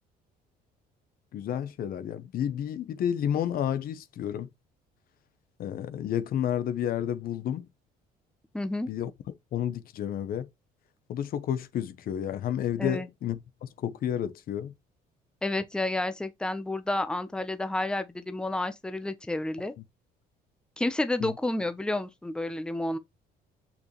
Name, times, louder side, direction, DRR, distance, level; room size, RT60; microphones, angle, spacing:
voice 1, 1.3-4.5 5.6-7.7 8.9-9.1 9.5-10.5 11.1-14.7 21.2-21.3, left 10 dB, 60° left, 0.9 m, -31 dB
voice 2, 8.5-8.9 12.8-13.1 15.4-19.7 20.8-23.0, left 2 dB, 5° left, 0.9 m, -30 dB
6.4 x 5.8 x 3.2 m
cardioid pair, 110°, 17 cm